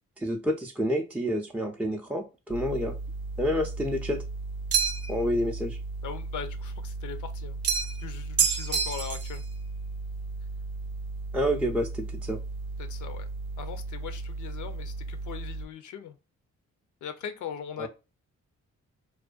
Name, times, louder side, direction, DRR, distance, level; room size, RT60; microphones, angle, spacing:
voice 1, 0.2-3.0 3.4-4.2 5.1-5.8 11.3-12.4 17.8-17.9, equal, 5° right, 0.4 m, -28 dB
sound 1, 2.5-15.7, right 3 dB, 85° right, 0.7 m, -36 dB
sound 2, 4.7-5.2 7.6-8.0 8.4-9.4, right 7 dB, 50° right, 0.6 m, -26 dB
voice 2, 6.0-7.6 8.0-9.4 12.8-13.3 13.6-16.1 17.0-17.9, left 8 dB, 70° left, 0.5 m, -40 dB
2.4 x 2.2 x 2.3 m
supercardioid pair, 55°, 32 cm